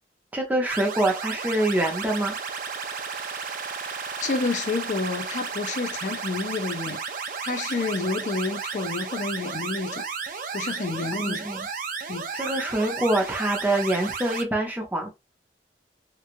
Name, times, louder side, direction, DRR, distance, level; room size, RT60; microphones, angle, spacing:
voice 1, 0.3-2.4 11.2-11.7 12.3-15.1, right 1 dB, 10° right, 0.7 m, -25 dB
sound 1, 0.7-14.4, right 5 dB, 50° right, 0.5 m, -33 dB
voice 2, 4.2-7.0 7.4-10.0 10.5-11.4 12.1-12.3, left 3 dB, 45° left, 0.4 m, -29 dB
3.0 x 2.3 x 2.5 m
head